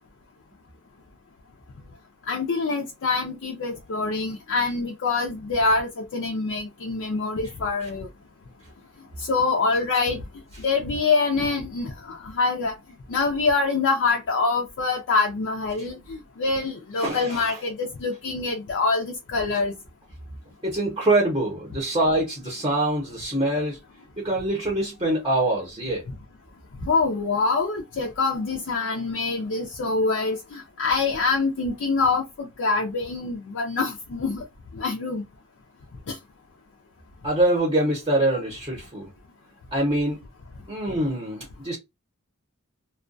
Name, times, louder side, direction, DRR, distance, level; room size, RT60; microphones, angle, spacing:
voice 1, 2.3-8.1 9.3-10.2 10.6-12.7 13.1-19.8 26.8-34.4 34.7-35.2 36.1-36.2, left 4 dB, 60° left, 0.5 m, -25 dB
voice 2, 17.0-17.6 20.6-23.8 24.2-26.0 37.2-39.1 39.7-40.2 40.7-41.8, right 1 dB, 20° right, 0.7 m, -24 dB
2.3 x 2.2 x 2.5 m
head